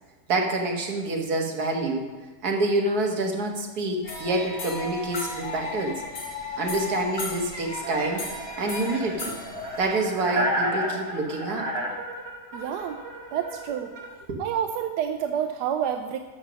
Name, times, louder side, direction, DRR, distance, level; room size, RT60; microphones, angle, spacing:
voice 1, 0.3-2.1 2.4-6.0 6.6-8.2 8.6-9.3 9.8-11.7 14.3-14.4, right 2 dB, 70° right, 1 dB, 1.9 m, -27 dB
sound 1, 4.0-10.0, left 3 dB, 85° left, 2.5 m, -35 dB
sound 2, 7.7-14.1, right 1 dB, 40° right, 2.2 m, -32 dB
voice 2, 12.5-13.0 13.3-13.9 14.4-16.2, right 9 dB, 90° right, 6 dB, 1.2 m, -28 dB
13.0 x 5.7 x 6.2 m, 1.3 s
omnidirectional pair, 1.7 m